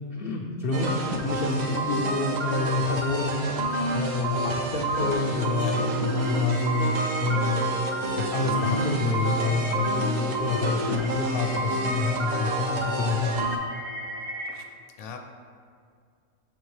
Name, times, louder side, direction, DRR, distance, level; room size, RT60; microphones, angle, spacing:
voice 1, 0.1-3.5 3.9-6.9 7.2-7.7 8.3-13.3, left 3 dB, 65° left, 0 dB, 0.5 m, -27 dB
sound 1, 0.7-13.6, right 2 dB, 85° right, 0.3 m, -29 dB
sound 2, 5.0-14.5, equal, 65° right, 1.4 m, -36 dB
voice 2, 5.6-5.8 14.5-14.7 15.0-15.2, left 6 dB, 85° left, 4 dB, 1.1 m, -40 dB
7.2 x 4.2 x 3.2 m, 2.2 s
omnidirectional pair, 1.4 m